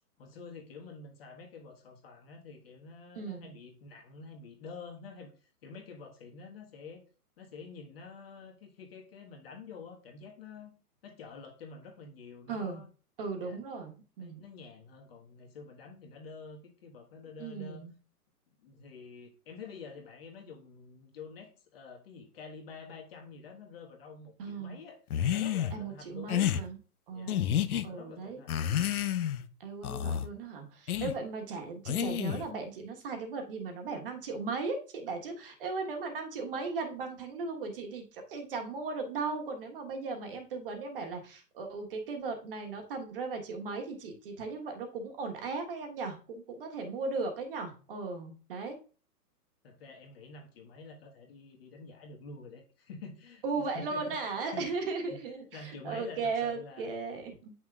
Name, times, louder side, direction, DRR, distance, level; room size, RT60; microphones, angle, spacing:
voice 1, 0.2-7.0 7.4-10.7 11.0-12.9 13.4-13.6 14.2-17.9 18.6-25.0 25.3-26.3 27.1-27.4 27.8-28.8 49.6-54.2 54.5-54.7 55.5-56.9, left 4 dB, 40° left, 2 dB, 1.5 m, -48 dB
voice 2, 3.1-3.5 12.5-12.8 13.2-14.5 17.4-17.9 24.4-24.8 25.7-26.8 27.1-28.4 29.6-48.8 53.4-57.5, right 4 dB, 35° right, 4 dB, 1.4 m, -37 dB
sound 1, 25.1-25.7 26.3-26.6 27.3-27.8 28.5-29.4 29.8-30.3 30.9-31.1 31.9-32.5, left 10 dB, 65° left, 0.8 m, -30 dB
9.4 x 6.0 x 2.4 m, 0.36 s
hypercardioid pair, 165°, 47 cm